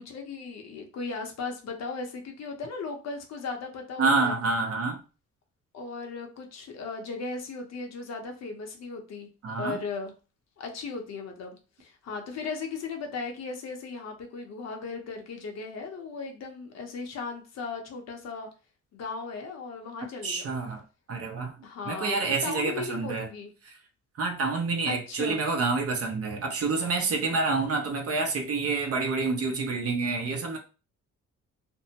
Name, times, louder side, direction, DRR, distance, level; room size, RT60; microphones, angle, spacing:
voice 1, 0.0-4.3 5.7-9.3 9.6-10.1 10.6-18.5 18.9-20.6 21.6-23.5 24.9-25.4, left 4 dB, 60° left, 3 dB, 0.8 m, -37 dB
voice 2, 4.0-5.0 9.4-9.8 20.2-20.8 21.1-21.6 21.8-23.3 23.6-23.7 24.2-30.6, right 4 dB, 50° right, 3 dB, 0.7 m, -28 dB
2.6 x 2.1 x 2.8 m, 0.34 s
cardioid pair, 90°, 30 cm